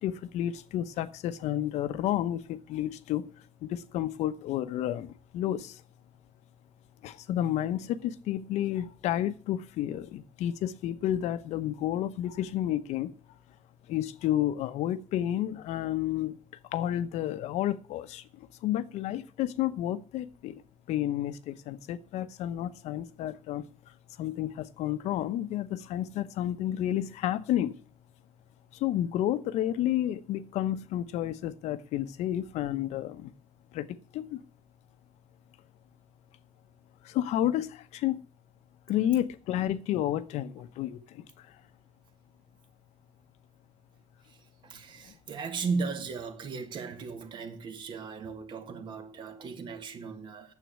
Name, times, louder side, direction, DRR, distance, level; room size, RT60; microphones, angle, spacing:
voice 1, 0.0-3.3 3.6-5.8 7.0-13.1 13.9-16.4 16.7-20.6 20.9-23.6 24.2-27.7 28.7-33.3 33.7-33.9 34.1-34.4 37.0-38.2 38.9-41.5, left 12 dB, 70° left, 0.9 m, -31 dB
voice 2, 44.6-50.5, right 4 dB, 40° right, 1.6 m, -36 dB
9.5 x 7.6 x 8.1 m
cardioid pair, 175°, 12 cm